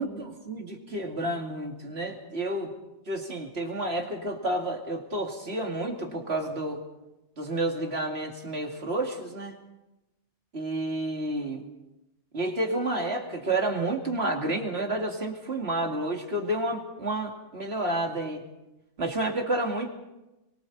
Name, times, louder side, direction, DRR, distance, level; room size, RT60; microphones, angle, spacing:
voice 1, 0.0-2.7 3.1-6.8 7.4-9.6 10.5-11.7 12.3-18.4 19.0-19.9, right 1 dB, 60° right, 2 dB, 2.8 m, -30 dB
26.0 x 23.5 x 4.2 m, 0.98 s
omnidirectional pair, 1.2 m